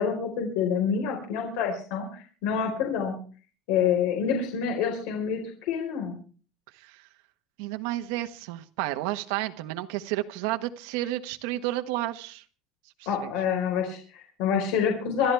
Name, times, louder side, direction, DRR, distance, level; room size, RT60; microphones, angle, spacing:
voice 1, 0.0-3.2 3.7-5.4 5.7-6.2 13.1-15.3, left 7 dB, 75° left, 2 dB, 4.5 m, -27 dB
voice 2, 6.7-7.1 7.6-12.4 13.2-13.3, right 16 dB, 80° right, 7 dB, 1.3 m, -31 dB
26.5 x 12.0 x 3.5 m, 0.39 s
cardioid pair, 160°, 0 cm